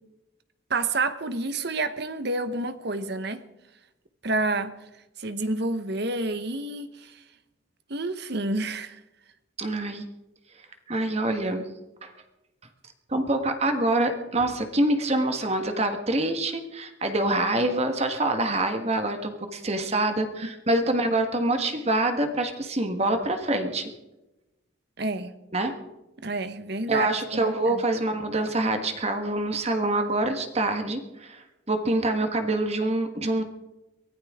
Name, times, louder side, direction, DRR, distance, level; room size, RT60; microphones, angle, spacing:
voice 1, 0.7-3.4 4.2-4.7 5.2-7.2 7.9-9.0 20.4-20.5 25.0-25.3 26.2-27.1 27.3-27.8, right 2 dB, 55° right, 10 dB, 1.1 m, -29 dB
voice 2, 9.6-10.0 10.9-11.6 12.0-12.1 13.1-23.9 25.5-25.7 26.9-33.4, right 2 dB, 30° right, 6 dB, 1.5 m, -26 dB
23.5 x 16.0 x 3.7 m, 0.98 s
head